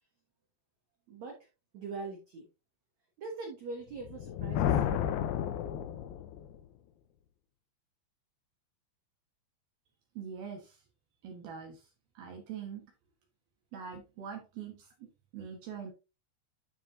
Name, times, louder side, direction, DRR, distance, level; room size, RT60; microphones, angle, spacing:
voice 1, 1.1-1.5 1.7-2.5 3.2-5.1, right 3 dB, 80° right, 2 dB, 1.6 m, -42 dB
Thunder, 3.9-6.6, left 9 dB, 80° left, 2.4 m, -32 dB
voice 2, 10.1-10.8 11.2-11.8 12.1-12.9 13.7-15.9, right 7 dB, 65° right, 2 dB, 3.0 m, -43 dB
12.5 x 4.9 x 2.7 m, 0.29 s
omnidirectional pair, 5.4 m